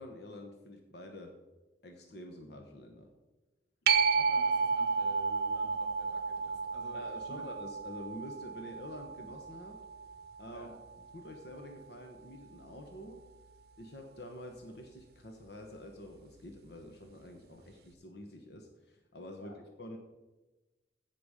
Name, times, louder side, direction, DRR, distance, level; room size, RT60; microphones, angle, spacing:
voice 1, 0.0-1.3 1.8-3.1 6.9-9.8 10.4-10.7 11.1-13.2 13.8-20.0, left 1 dB, 60° left, 4 dB, 1.1 m, -47 dB
voice 2, 3.9-7.4 10.5-10.7 19.4-19.5, equal, 80° left, -1 dB, 3.4 m, -51 dB
sound 1, 3.9-11.0 16.6-16.7, right 5 dB, 60° right, 0.7 m, -32 dB
15.5 x 5.9 x 5.0 m, 1.1 s
head